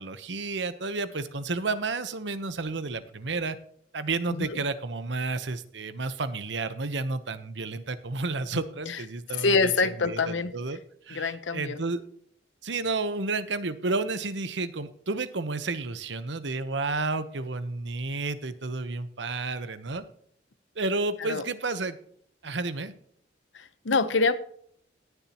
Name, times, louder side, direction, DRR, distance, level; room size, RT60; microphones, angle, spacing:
voice 1, 0.0-3.6 3.9-9.7 10.0-10.8 11.1-12.0 12.6-20.0 20.8-22.0 22.4-22.9, right 3 dB, 70° right, 1.0 m, -31 dB
voice 2, 4.3-4.6 8.5-9.0 9.3-10.5 11.1-11.8 21.2-21.4 23.5-24.4, left 4 dB, 90° left, 0.9 m, -26 dB
19.5 x 7.1 x 3.0 m
head